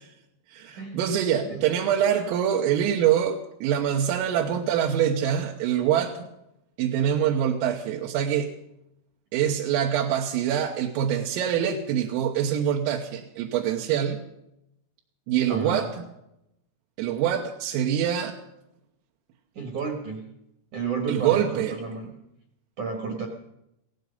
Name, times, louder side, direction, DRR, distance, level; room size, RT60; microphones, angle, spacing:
voice 1, 0.5-6.2 6.8-8.5 9.3-14.2 15.3-16.1 17.0-18.4 21.1-21.7, right 9 dB, 85° right, 1 dB, 3.7 m, -25 dB
voice 2, 15.5-15.9 19.5-20.3 20.7-22.1 22.8-23.3, right 5 dB, 60° right, 2 dB, 2.0 m, -32 dB
16.5 x 16.0 x 5.3 m, 0.83 s
omnidirectional pair, 5.8 m